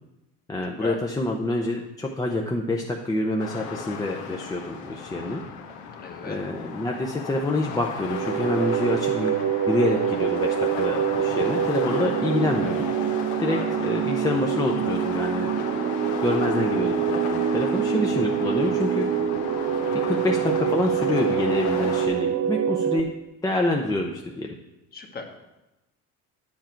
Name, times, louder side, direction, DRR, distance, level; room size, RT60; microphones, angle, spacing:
voice 1, 0.5-5.4 6.3-12.9 13.4-15.5 16.2-19.1 20.1-23.1 23.4-24.5, left 2 dB, 10° left, 0 dB, 0.6 m, -27 dB
sound 1, 3.4-22.1, left 6 dB, 80° left, 1.3 m, -35 dB
voice 2, 6.0-6.4 13.5-14.0 24.9-25.3, left 3 dB, 30° left, 3 dB, 1.4 m, -37 dB
sound 2, 8.0-23.0, right 9 dB, 50° right, 0.6 m, -25 dB
10.0 x 7.3 x 4.5 m, 0.98 s
cardioid pair, 125°, 30 cm